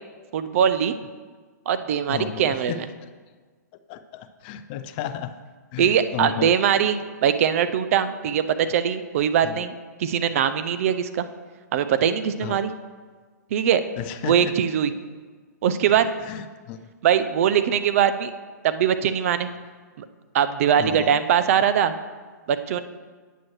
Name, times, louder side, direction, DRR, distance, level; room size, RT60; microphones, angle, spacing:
voice 1, 0.3-0.9 1.7-2.9 5.8-9.7 10.0-11.3 11.7-12.7 13.5-13.8 14.2-14.9 15.6-16.1 17.0-18.3 18.6-19.5 20.0-20.1 20.3-21.9 22.5-22.8, right 8 dB, 50° right, 11 dB, 0.4 m, -21 dB
voice 2, 2.1-3.1 3.9-5.3 5.7-6.5 9.4-9.6 12.4-12.6 14.0-14.5 16.3-16.8 20.8-21.2, left 9 dB, 35° left, 11 dB, 0.4 m, -33 dB
9.0 x 7.5 x 3.1 m, 1.5 s
hypercardioid pair, 135°, 10 cm